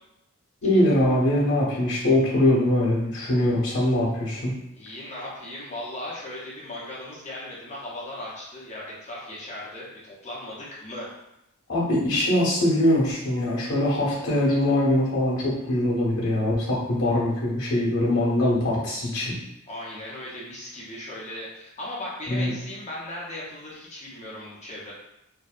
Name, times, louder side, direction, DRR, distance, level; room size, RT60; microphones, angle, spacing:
voice 1, 0.6-4.6 11.7-19.4 22.3-22.5, left 1 dB, 65° left, -7 dB, 0.8 m, -22 dB
voice 2, 4.7-11.1 19.7-24.9, left 1 dB, 30° left, -6 dB, 0.6 m, -37 dB
2.6 x 2.1 x 2.4 m, 0.85 s
head